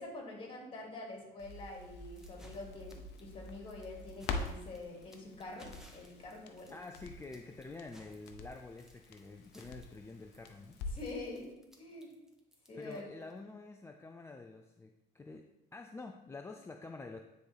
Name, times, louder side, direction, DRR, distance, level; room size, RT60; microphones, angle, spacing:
voice 1, 0.0-6.7 10.9-12.1 12.7-13.1, left 2 dB, 30° left, -1 dB, 2.4 m, -46 dB
Crackle, 1.4-11.2 11.5-11.6, left 3 dB, 90° left, 0.7 m, -46 dB
sound 1, 2.2-13.4, equal, 5° right, 1.1 m, -62 dB
voice 2, 6.7-10.8 12.7-15.5 15.7-17.2, left 3 dB, 15° left, 4 dB, 0.4 m, -48 dB
9.4 x 3.9 x 3.4 m, 0.94 s
cardioid pair, 110°, 17 cm